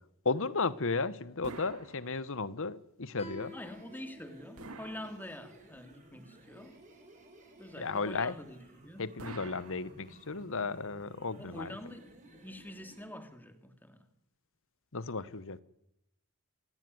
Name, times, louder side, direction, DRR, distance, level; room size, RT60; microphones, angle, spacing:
voice 1, 0.2-3.5 7.8-8.3 9.0-11.8 14.9-15.6, left 4 dB, 65° left, 1.3 m, -34 dB
sound 1, 1.4-2.6 4.6-5.8 9.2-10.5, right 3 dB, 70° right, 2.2 m, -49 dB
Guitar, 3.2-6.4, left 3 dB, 30° left, 6.7 m, -53 dB
sound 2, 3.3-13.1, right 2 dB, 35° right, 7.3 m, -57 dB
voice 2, 3.5-6.8 7.6-9.1 11.4-14.1, left 1 dB, 10° left, 3.0 m, -46 dB
27.5 x 19.0 x 9.6 m
head